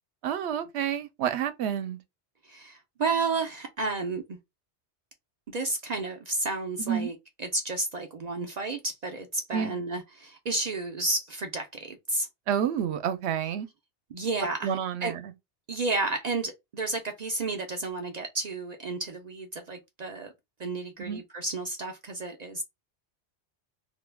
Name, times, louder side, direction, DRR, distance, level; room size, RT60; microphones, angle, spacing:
voice 1, 0.2-2.0 6.9-7.1 9.5-9.8 12.5-13.7 14.6-15.1 21.0-21.2, right 9 dB, 75° right, 0.8 m, -29 dB
voice 2, 2.4-4.4 5.5-12.3 13.4-13.5 14.1-15.1 15.7-20.3 20.6-22.6, right 3 dB, 55° right, 0.4 m, -32 dB
2.7 x 2.2 x 3.2 m
omnidirectional pair, 1.1 m